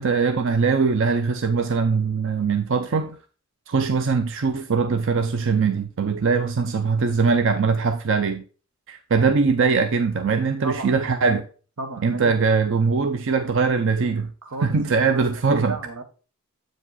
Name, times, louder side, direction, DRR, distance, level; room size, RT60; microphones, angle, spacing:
voice 1, 0.0-3.2 3.7-8.4 8.9-11.5 12.0-14.3 14.6-15.8, right 5 dB, 60° right, 0.5 m, -21 dB
voice 2, 10.6-11.0 11.8-12.3 14.4-16.0, right 3 dB, 90° right, 1.2 m, -34 dB
7.9 x 4.9 x 4.0 m
head